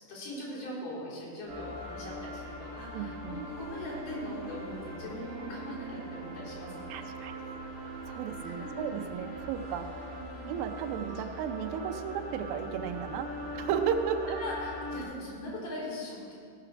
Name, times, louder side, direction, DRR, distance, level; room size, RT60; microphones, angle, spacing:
voice 1, 0.1-7.1 8.4-8.9 10.1-10.5 13.5-13.6 14.4-16.3, left 1 dB, 70° left, -7 dB, 5.2 m, -40 dB
sound 1, 1.5-15.0, equal, 35° right, 4.5 m, -41 dB
voice 2, 2.9-3.4 6.9-7.3 8.1-9.9 10.5-14.4, right 8 dB, 90° right, 6 dB, 2.5 m, -34 dB
17.0 x 5.9 x 5.9 m, 2.4 s
omnidirectional pair, 3.9 m